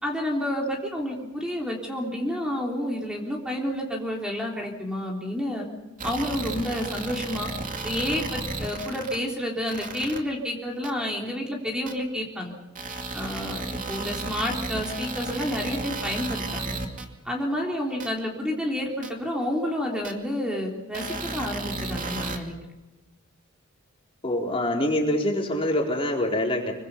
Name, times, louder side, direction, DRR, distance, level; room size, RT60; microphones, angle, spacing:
voice 1, 0.0-5.7 6.0-7.5 7.8-12.5 13.1-16.8 17.3-22.5, left 1 dB, 5° right, -1 dB, 3.6 m, -30 dB
sound 1, 6.0-9.2 9.7-10.2 10.8-10.9 11.9-12.0 12.7-17.0 18.0-18.1 19.0-19.1 20.0-20.1 20.9-22.4, right 3 dB, 40° right, 2.6 m, -33 dB
voice 2, 24.2-26.7, left 1 dB, 25° left, 0 dB, 4.1 m, -25 dB
26.0 x 24.0 x 5.6 m, 1.1 s
head